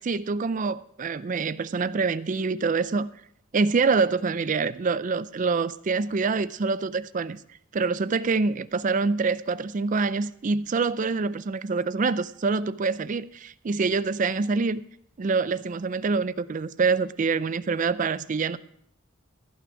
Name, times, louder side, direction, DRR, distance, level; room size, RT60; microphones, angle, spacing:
voice 1, 0.0-3.1 3.5-7.4 7.7-14.8 15.2-18.6, right 4 dB, 40° right, 0.4 m, -26 dB
15.0 x 6.0 x 6.9 m
head